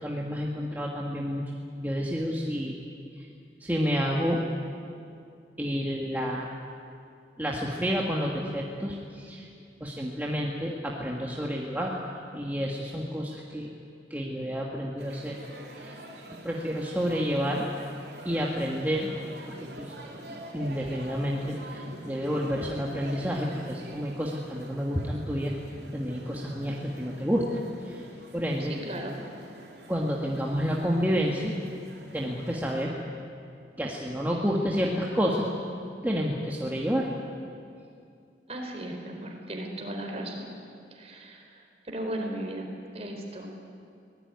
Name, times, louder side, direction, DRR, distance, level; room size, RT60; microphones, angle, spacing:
voice 1, 0.0-1.4 1.8-2.8 3.6-4.4 5.6-6.5 7.4-9.4 9.8-12.0 12.3-13.7 14.1-15.3 15.8-15.9 16.4-17.6 18.2-19.1 19.5-19.9 20.3-25.5 25.9-28.0 28.3-28.7 29.9-31.5 32.1-32.9 33.8-35.5 36.0-37.1, equal, 10° right, -2 dB, 1.8 m, -29 dB
sound 1, 15.0-32.8, right 1 dB, 65° right, 4.1 m, -46 dB
voice 2, 28.6-29.1 38.5-40.4 40.9-42.7 42.9-43.5, right 1 dB, 35° right, 2 dB, 4.2 m, -36 dB
24.0 x 18.0 x 9.6 m, 2.4 s
head